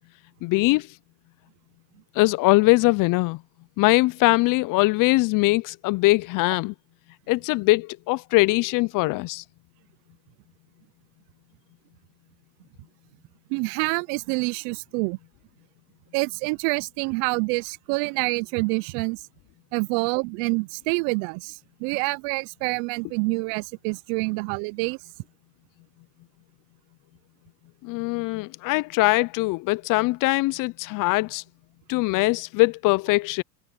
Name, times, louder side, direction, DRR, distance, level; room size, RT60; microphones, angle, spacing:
voice 1, 0.4-0.9 2.2-3.4 3.8-6.7 7.3-9.4 27.8-31.4 31.9-33.4, left 22 dB, 45° left, 0.6 m, -21 dB
voice 2, 13.5-15.2 16.1-19.2 19.7-25.0, right 31 dB, 55° right, 0.7 m, -27 dB
hypercardioid pair, 100°, 48 cm